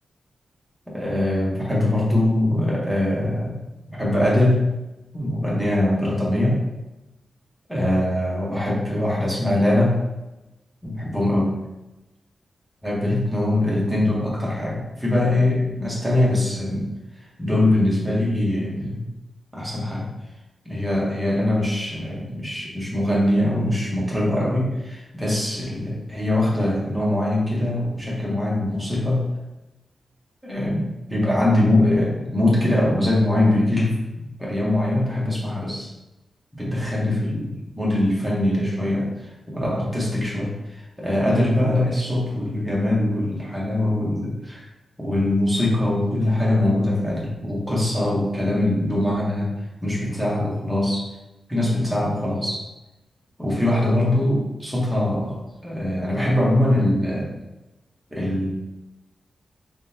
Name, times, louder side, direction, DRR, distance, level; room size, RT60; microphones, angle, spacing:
voice 1, 0.9-3.6 3.9-4.7 5.1-6.6 7.7-10.0 10.8-11.5 12.8-16.9 17.4-19.1 19.5-20.1 20.6-29.3 30.4-34.0 34.2-35.9 36.5-44.7 45.0-49.5 49.8-51.0 51.5-52.6 53.4-57.3 58.1-58.5, left 1 dB, 5° right, -5 dB, 0.9 m, -22 dB
3.7 x 3.3 x 2.7 m, 1.0 s
wide cardioid pair, 180°, 0 cm